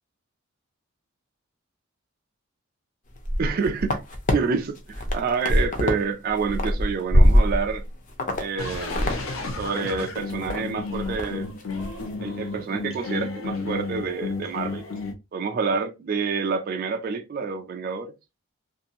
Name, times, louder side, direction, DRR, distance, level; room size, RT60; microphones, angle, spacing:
sound 1, 3.2-4.3 4.8-6.0 6.3-7.8 8.2-8.4 8.7-9.2 9.5-9.6 10.0-10.6 10.9-11.3 11.6-11.9, equal, 40° left, 0.6 m, -22 dB
voice 1, 3.4-4.0 4.3-7.8 8.4-9.1 9.6-11.6 12.2-14.8 15.3-18.1, right 5 dB, 45° right, 0.3 m, -28 dB
sound 2, 8.6-15.1, left 3 dB, 85° left, 0.8 m, -32 dB
2.7 x 2.5 x 2.3 m
head